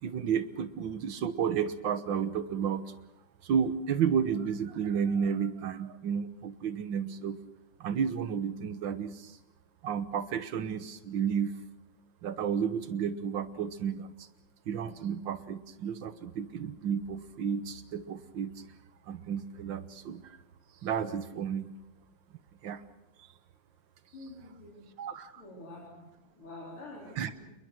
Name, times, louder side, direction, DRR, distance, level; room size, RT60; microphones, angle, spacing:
voice 1, 0.0-2.8 3.4-7.4 7.8-9.4 9.8-11.6 12.2-14.3 14.7-18.5 19.1-20.4 20.8-21.7 22.6-22.8 24.2-24.3 25.0-25.4 27.2-27.3, right 7 dB, 65° right, 11 dB, 1.8 m, -32 dB
voice 2, 24.1-24.8 25.4-26.1 26.3-27.5, left 2 dB, 85° left, -4 dB, 4.8 m, -47 dB
28.5 x 21.5 x 6.2 m, 1.0 s
omnidirectional pair, 2.3 m